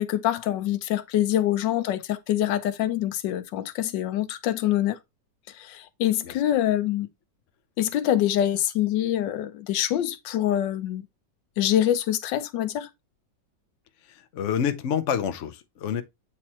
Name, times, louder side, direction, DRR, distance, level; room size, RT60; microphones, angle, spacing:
voice 1, 0.0-5.0 5.5-7.1 7.8-11.1 11.6-12.9, left 12 dB, 85° left, 1.4 m, -25 dB
voice 2, 14.1-16.0, left 8 dB, 55° left, 0.9 m, -28 dB
8.5 x 3.1 x 4.2 m
omnidirectional pair, 1.9 m